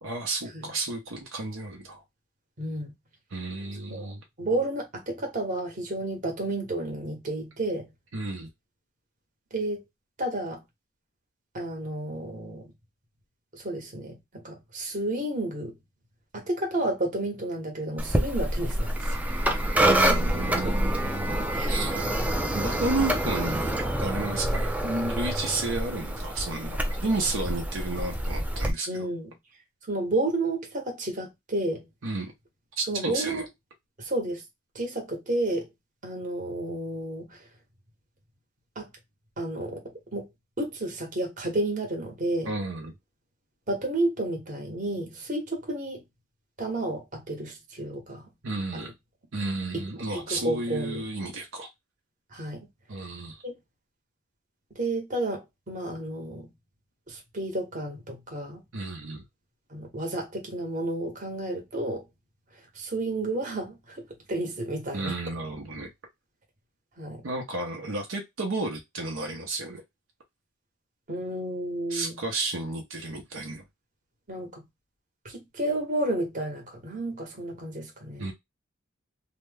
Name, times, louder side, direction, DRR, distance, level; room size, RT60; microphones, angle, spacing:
voice 1, 0.0-2.0 3.3-4.2 8.1-8.5 19.8-21.4 21.7-21.9 22.5-28.9 32.0-32.3 32.8-33.4 42.4-42.9 48.4-48.9 49.3-51.7 52.9-53.4 58.7-59.2 64.9-65.9 67.2-69.8 71.9-73.6 78.2-78.3, right 2 dB, 70° right, 0.8 m, -32 dB
voice 2, 2.6-2.9 3.9-4.1 4.4-7.9 9.5-9.8 10.2-10.6 11.5-12.7 13.5-15.7 16.3-19.2 19.9-20.3 20.6-20.8 21.5-22.1 28.9-29.3 29.9-31.8 32.9-33.4 34.0-34.4 34.7-35.7 36.0-37.5 38.7-38.9 39.4-40.3 40.6-42.5 43.7-46.0 46.6-48.3 48.7-48.9 49.7-49.8 50.3-51.0 52.3-52.6 53.4-53.5 54.7-56.5 57.1-58.6 59.7-62.1 62.5-65.2 67.0-67.2 71.1-72.1 74.3-74.6 75.2-78.3, right 1 dB, 40° right, 1.1 m, -31 dB
sound 1, 18.0-28.7, right 1 dB, 5° right, 0.4 m, -27 dB
2.9 x 2.1 x 3.3 m
head